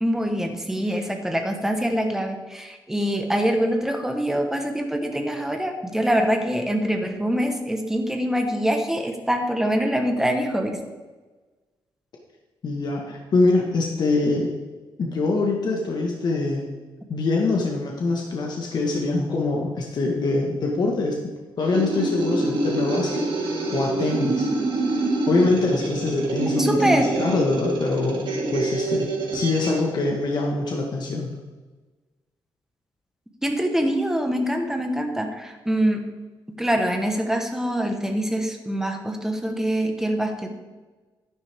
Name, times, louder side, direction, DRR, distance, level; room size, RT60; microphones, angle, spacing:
voice 1, 0.0-10.8 26.6-27.1 33.4-36.0 36.6-40.5, equal, 5° right, 4 dB, 1.2 m, -24 dB
voice 2, 12.6-14.5 15.0-16.7 17.1-23.3 23.7-24.5 25.3-31.4, left 3 dB, 55° left, -1 dB, 1.5 m, -24 dB
sound 1, 21.6-29.8, right 2 dB, 65° right, 2.4 m, -26 dB
11.0 x 10.5 x 3.6 m, 1.3 s
wide cardioid pair, 145°, 9 cm